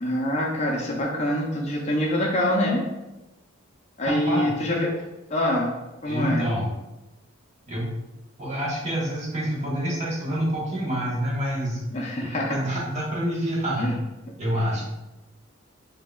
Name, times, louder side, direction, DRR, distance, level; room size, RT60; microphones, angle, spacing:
voice 1, 0.0-2.8 4.0-4.9 5.3-5.8 6.0-6.4 11.9-12.6 13.8-14.0 14.5-14.8, left 1 dB, 30° left, -1 dB, 0.5 m, -25 dB
voice 2, 4.0-4.5 6.0-6.7 7.7-7.9 8.4-11.8 12.2-13.9 14.4-14.8, equal, 35° right, -6 dB, 1.3 m, -27 dB
6.4 x 2.8 x 2.3 m, 1.0 s
head